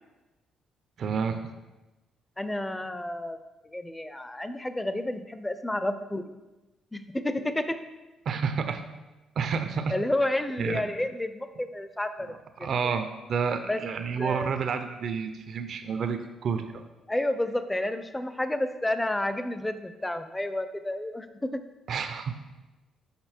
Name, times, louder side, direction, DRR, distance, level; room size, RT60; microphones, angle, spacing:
voice 1, 1.0-1.5 8.3-8.8 9.4-10.0 10.6-10.8 12.3-16.8 21.9-22.4, right 6 dB, 60° right, 7 dB, 0.6 m, -30 dB
voice 2, 2.4-3.4 3.6-6.2 6.9-7.8 9.9-12.3 12.8-13.0 13.7-13.8 14.2-14.6 17.1-21.6, left 1 dB, 10° left, 10 dB, 0.5 m, -30 dB
6.8 x 5.3 x 4.5 m, 1.1 s
cardioid pair, 90°, 0 cm